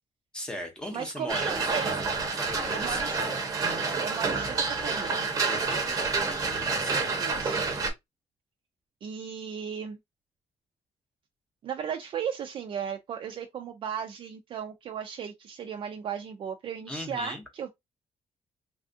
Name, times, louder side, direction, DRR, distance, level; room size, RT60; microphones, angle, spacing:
voice 1, 0.3-1.7 2.3-3.1 5.5-6.0 6.2-7.1 16.9-17.4, left 1 dB, 5° left, 0.8 m, -38 dB
voice 2, 0.9-1.9 2.7-3.3 4.0-5.3 7.2-7.6 9.0-10.0 11.6-17.7, right 7 dB, 45° right, 0.4 m, -36 dB
sound 1, 1.3-7.9, right 4 dB, 30° right, 0.8 m, -28 dB
3.3 x 2.4 x 2.5 m
cardioid pair, 175°, 12 cm